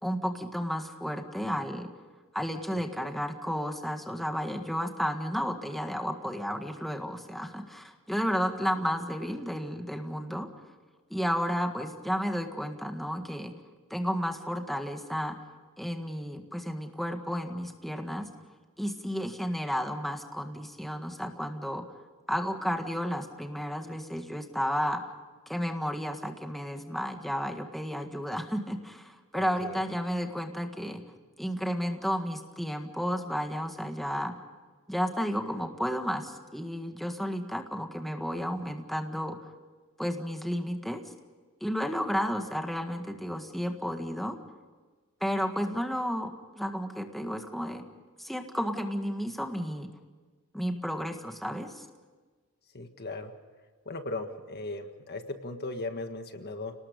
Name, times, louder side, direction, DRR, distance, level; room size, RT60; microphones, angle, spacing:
voice 1, 0.0-1.9 2.3-10.5 11.1-13.5 13.9-15.4 15.8-18.3 18.8-21.9 22.3-25.0 25.5-31.0 31.4-34.3 34.9-39.5 40.0-41.0 41.6-44.4 45.2-47.9 48.2-49.9 50.5-51.8, equal, ahead, 4 dB, 1.7 m, -32 dB
voice 2, 29.3-29.8 52.7-53.3 53.8-56.7, left 2 dB, 45° left, 7 dB, 1.7 m, -37 dB
30.0 x 19.5 x 5.3 m, 1.4 s
head